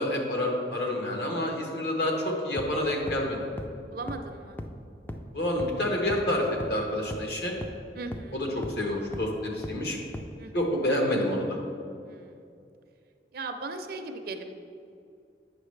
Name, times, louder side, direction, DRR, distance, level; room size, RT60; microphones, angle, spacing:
voice 1, 0.0-3.5 5.3-7.5 8.3-10.0 10.5-11.6, left 1 dB, 65° left, 0 dB, 1.2 m, -28 dB
sound 1, 2.6-2.7 3.1-3.2 3.6-3.7 4.1-4.2 4.6-4.7 5.1-5.2 5.6-5.7 6.1-6.2 6.6-6.7 7.1-7.2 7.6-7.7 8.1-8.2 8.6-8.7 9.1-9.2 9.6-9.7 10.1-10.2, left 1 dB, 10° left, 0.3 m, -35 dB
voice 2, 3.9-4.6 7.9-8.5 10.4-10.6 12.1-12.4 13.3-14.4, right 3 dB, 55° right, 6 dB, 0.5 m, -38 dB
8.8 x 6.1 x 3.2 m, 2.5 s
head